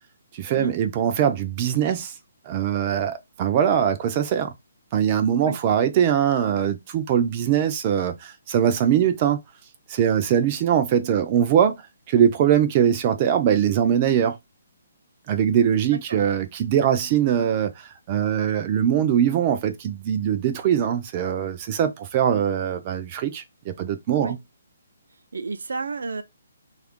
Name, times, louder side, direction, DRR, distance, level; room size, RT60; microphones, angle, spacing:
voice 1, 0.3-2.1 2.5-4.5 4.9-9.4 9.9-11.7 12.1-14.4 15.3-24.4, right 9 dB, 25° right, 0.3 m, -22 dB
voice 2, 25.3-26.2, right 4 dB, 90° right, 0.6 m, -31 dB
3.4 x 2.4 x 3.5 m
hypercardioid pair, 170°, 0 cm